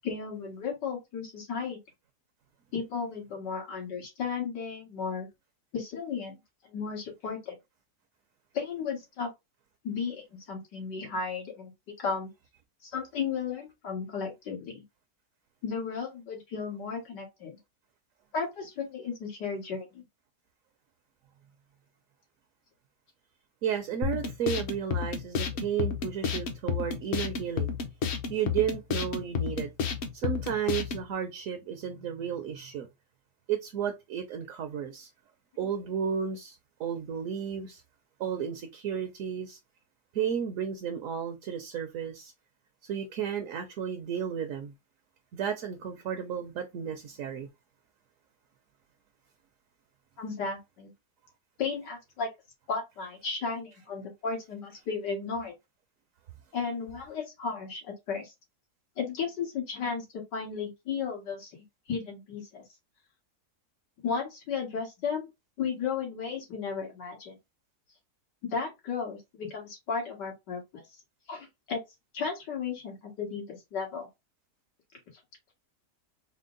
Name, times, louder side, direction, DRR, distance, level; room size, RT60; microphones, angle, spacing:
voice 1, 0.0-1.8 2.7-5.3 5.7-6.4 6.7-7.6 8.5-9.3 9.8-11.7 12.0-12.3 12.8-14.8 15.6-17.6 18.3-20.0 50.2-50.9 51.6-52.3 52.7-55.5 56.5-58.3 59.0-61.5 61.9-62.6 64.0-65.3 65.6-67.4 68.4-70.8 71.3-71.8 72.1-74.1, left 5 dB, 90° left, 2.2 m, -34 dB
voice 2, 23.6-27.7 28.3-29.7 30.1-32.9 33.5-35.1 35.6-37.8 38.2-39.6 40.1-42.3 42.8-44.7 45.3-47.5, right 8 dB, 65° right, 0.9 m, -33 dB
sound 1, 24.0-31.0, left 6 dB, 55° left, 0.7 m, -31 dB
4.4 x 2.0 x 3.8 m
omnidirectional pair, 1.8 m